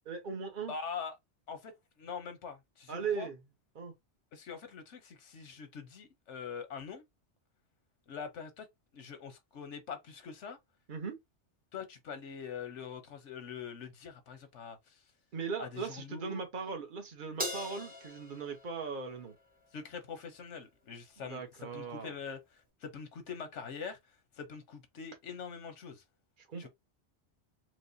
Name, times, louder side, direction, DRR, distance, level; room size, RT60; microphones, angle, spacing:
voice 1, 0.0-0.8 2.9-3.4 3.7-3.9 10.9-11.2 15.3-19.4 21.3-22.2 26.5-26.7, right 5 dB, 50° right, 1.1 m, -38 dB
voice 2, 0.7-1.2 1.5-1.7 2.0-3.3 4.3-7.0 8.1-8.7 8.9-10.6 11.7-15.0 15.6-16.4 19.7-21.4 21.7-24.0 24.3-26.0 26.6-26.7, left 6 dB, 90° left, 1.2 m, -43 dB
Crash cymbal, 17.4-19.9, equal, 10° right, 0.7 m, -41 dB
4.6 x 2.2 x 2.7 m
omnidirectional pair, 1.2 m